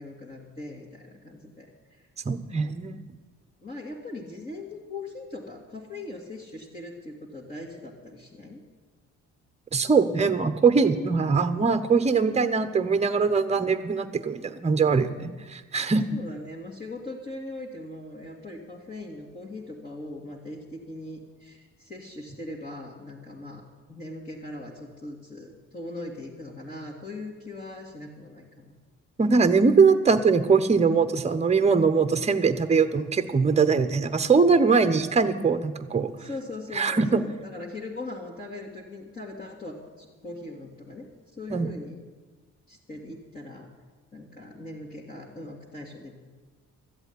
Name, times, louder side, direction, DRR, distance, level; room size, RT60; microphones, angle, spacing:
voice 1, 0.0-1.7 3.6-8.6 16.1-28.7 36.2-41.1 41.3-42.0 42.7-43.7 44.1-46.2, left 2 dB, 30° left, -4 dB, 2.5 m, -40 dB
voice 2, 2.3-3.0 9.7-16.2 29.2-36.1 36.7-37.2 41.5-41.7, right 5 dB, 20° right, 11 dB, 0.9 m, -22 dB
13.5 x 8.1 x 9.7 m, 1.3 s
cardioid pair, 90°, 30 cm